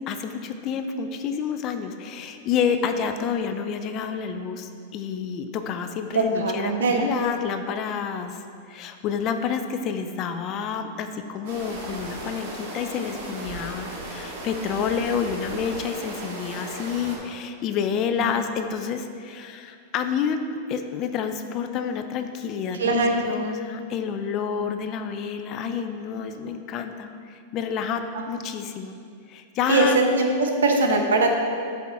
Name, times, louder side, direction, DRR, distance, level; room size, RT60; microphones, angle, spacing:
voice 1, 0.1-20.4 20.7-29.0 29.3-30.0, left 7 dB, 40° left, 8 dB, 0.5 m, -29 dB
voice 2, 6.1-7.1 18.2-18.3 22.8-23.2 29.7-31.4, right 2 dB, 85° right, 3 dB, 0.7 m, -21 dB
sound 1, 11.4-17.2, right 1 dB, 60° right, 1.6 m, -36 dB
7.7 x 3.5 x 4.3 m, 2.3 s
hypercardioid pair, 110°, 0 cm